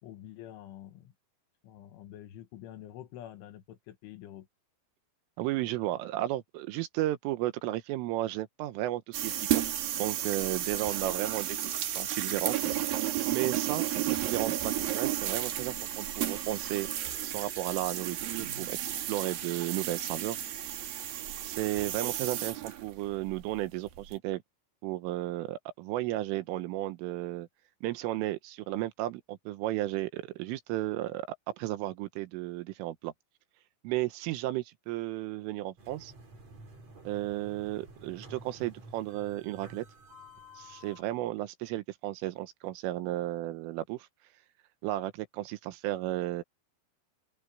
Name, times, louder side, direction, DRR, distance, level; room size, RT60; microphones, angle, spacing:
voice 1, 0.0-1.1 1.6-4.5, left 12 dB, 80° left, 3.9 m, -47 dB
voice 2, 5.4-9.6 9.9-11.6 11.8-12.6 13.3-16.9 17.2-20.4 21.4-24.4 24.8-27.5 27.8-33.1 33.8-36.1 37.1-39.9 40.6-44.1 44.8-46.4, right 15 dB, 90° right, 3.7 m, -34 dB
sound 1, 9.1-24.1, right 12 dB, 60° right, 2.9 m, -33 dB
sound 2, 35.8-41.0, right 1 dB, 35° right, 6.4 m, -51 dB
omnidirectional pair, 5.6 m